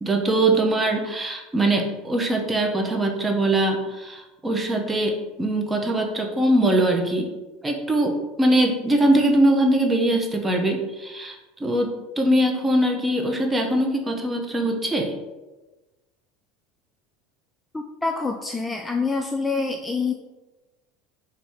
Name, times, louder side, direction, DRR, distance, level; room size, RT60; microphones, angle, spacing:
voice 1, 0.0-7.3 7.6-15.1, right 1 dB, 15° right, 2 dB, 0.7 m, -22 dB
voice 2, 17.7-20.1, left 4 dB, 10° left, 2 dB, 0.3 m, -26 dB
3.4 x 2.7 x 4.2 m, 1.1 s
supercardioid pair, 100°, 0 cm